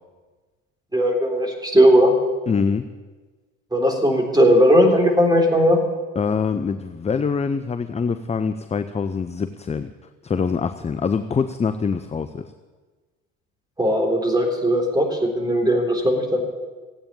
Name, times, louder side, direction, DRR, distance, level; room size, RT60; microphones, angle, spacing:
voice 1, 0.9-2.1 3.7-5.8 13.8-16.4, equal, 10° right, 2 dB, 3.8 m, -18 dB
voice 2, 2.5-2.9 6.2-9.9 10.2-12.4, left 5 dB, 20° left, 10 dB, 0.6 m, -24 dB
16.0 x 8.7 x 8.9 m, 1.3 s
hypercardioid pair, 65°, 37 cm